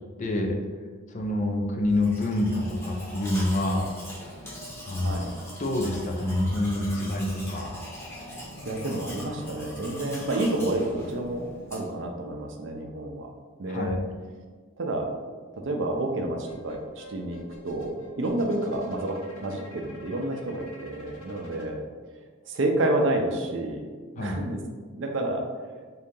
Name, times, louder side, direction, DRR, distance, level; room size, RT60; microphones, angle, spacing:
voice 1, 0.2-0.6 1.1-3.8 4.9-5.3 5.6-7.8 13.7-14.0 24.2-24.4, left 1 dB, 35° left, 2 dB, 0.4 m, -27 dB
Domestic sounds home sounds, 1.9-12.0, equal, 10° left, 0.8 m, -41 dB
voice 2, 4.8-5.3 8.3-11.4 11.7-13.3 13.6-14.0 14.8-15.1 15.5-21.8 22.5-23.9 24.2-24.6 24.9-25.4, right 1 dB, 60° right, 3 dB, 0.5 m, -29 dB
sound 1, 16.4-21.7, left 2 dB, 70° left, 0.6 m, -48 dB
3.8 x 2.7 x 3.6 m, 1.5 s
head